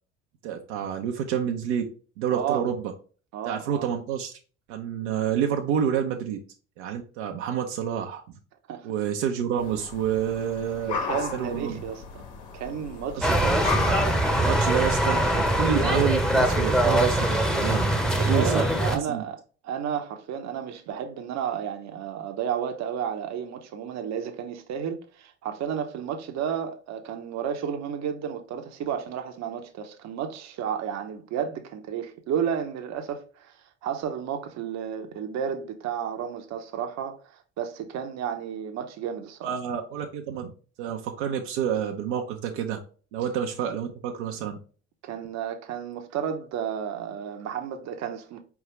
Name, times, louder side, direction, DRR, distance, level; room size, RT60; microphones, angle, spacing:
voice 1, 0.4-1.8 2.2-2.9 3.5-4.3 4.7-6.4 6.8-8.2 8.8-11.0 11.3-11.8 13.2-13.3 13.6-14.0 14.4-17.9 18.3-18.6 18.9-19.2 39.4-40.5 40.8-42.8 43.1-44.6, right 8 dB, 70° right, 0.8 m, -28 dB
voice 2, 2.3-2.6 3.3-3.9 8.7-8.9 10.9-12.2 12.5-13.7 18.2-19.4 19.6-39.5 45.0-48.4, right 8 dB, 50° right, 0.9 m, -32 dB
sound 1, 9.6-14.7, left 5 dB, 65° left, 1.6 m, -35 dB
sound 2, 13.2-19.0, right 1 dB, ahead, 1.0 m, -22 dB
4.7 x 3.5 x 3.1 m
hypercardioid pair, 65°, 35 cm